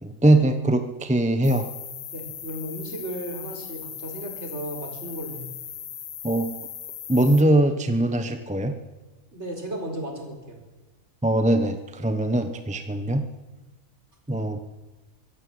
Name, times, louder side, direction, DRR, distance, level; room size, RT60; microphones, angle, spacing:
voice 1, 0.0-1.7 6.2-6.5 7.1-8.7 11.2-13.3 14.3-14.6, right 1 dB, 5° right, 8 dB, 1.0 m, -21 dB
sound 1, 1.4-7.4, left 10 dB, 85° left, 1.4 m, -38 dB
voice 2, 2.1-5.5 9.3-10.6, right 1 dB, 50° right, 2 dB, 5.1 m, -35 dB
24.0 x 15.0 x 7.9 m, 1.2 s
omnidirectional pair, 1.5 m